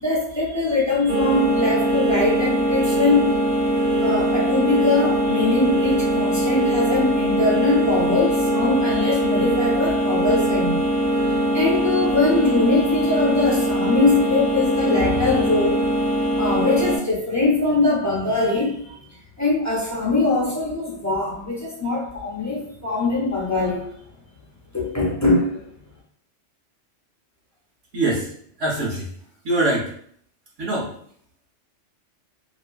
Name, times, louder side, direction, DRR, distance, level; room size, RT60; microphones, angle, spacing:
voice 1, 0.0-3.3 4.0-10.8 11.5-15.8 16.4-19.0 19.4-23.9 24.7-25.6, left 3 dB, 20° left, -5 dB, 0.6 m, -22 dB
sound 1, 1.1-17.0, right 1 dB, 40° right, 0.8 m, -21 dB
voice 2, 27.9-28.3 28.6-29.1 29.4-29.9 30.6-30.9, right 2 dB, 75° right, -3 dB, 1.3 m, -23 dB
2.9 x 2.4 x 2.3 m, 0.62 s
omnidirectional pair, 1.3 m